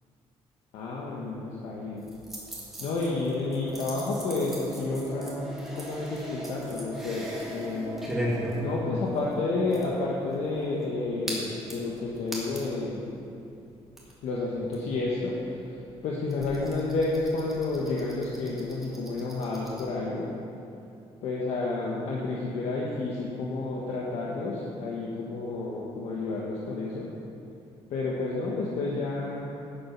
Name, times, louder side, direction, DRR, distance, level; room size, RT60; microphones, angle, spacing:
voice 1, 0.7-2.1 2.8-8.0 8.6-13.1 14.2-15.4 16.0-20.3 21.2-27.1 27.9-29.5, left 3 dB, 70° left, -4 dB, 1.3 m, -30 dB
sound 1, 2.0-12.8 13.2-13.3 13.5-19.8, equal, 5° right, 1.8 m, -39 dB
sound 2, 2.4-12.8, right 1 dB, 20° right, 1.0 m, -43 dB
10.5 x 7.7 x 5.9 m, 2.6 s
cardioid pair, 180°, 11 cm